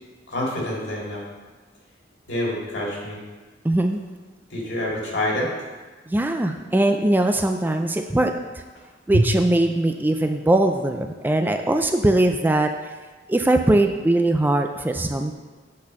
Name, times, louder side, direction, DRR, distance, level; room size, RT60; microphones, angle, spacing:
voice 1, 0.3-1.2 2.3-3.2 4.5-5.5 9.1-9.2, equal, 70° left, -4 dB, 2.3 m, -25 dB
voice 2, 3.6-4.0 6.1-8.3 9.1-12.7 13.3-15.3, right 1 dB, 10° right, 5 dB, 0.3 m, -20 dB
8.5 x 4.3 x 5.3 m, 1.3 s
head